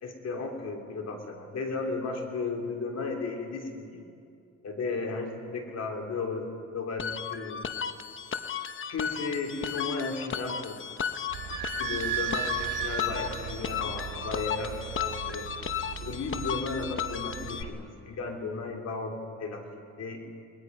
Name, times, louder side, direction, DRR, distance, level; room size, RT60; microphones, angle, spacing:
voice 1, 0.0-4.0 4.6-7.6 8.9-10.9 11.6-15.5 16.0-19.6 20.0-20.2, left 3 dB, 55° left, 3 dB, 3.3 m, -34 dB
sound 1, 7.0-17.6, left 8 dB, 40° left, 1.0 m, -35 dB
Idling / Squeak, 11.3-17.7, right 10 dB, 85° right, 2.6 m, -37 dB
29.5 x 20.0 x 5.3 m, 2.5 s
cardioid pair, 90°, 30 cm